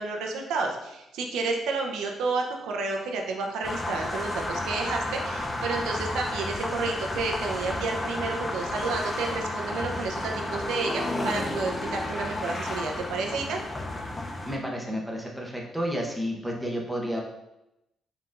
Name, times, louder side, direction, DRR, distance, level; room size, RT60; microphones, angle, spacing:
voice 1, 0.0-13.6, right 3 dB, 85° right, 2 dB, 0.6 m, -31 dB
sound 1, 3.6-14.6, left 1 dB, 25° left, 0.5 m, -32 dB
voice 2, 14.4-17.2, equal, ahead, -2 dB, 0.9 m, -31 dB
4.6 x 3.7 x 2.5 m, 0.90 s
cardioid pair, 90°, 0 cm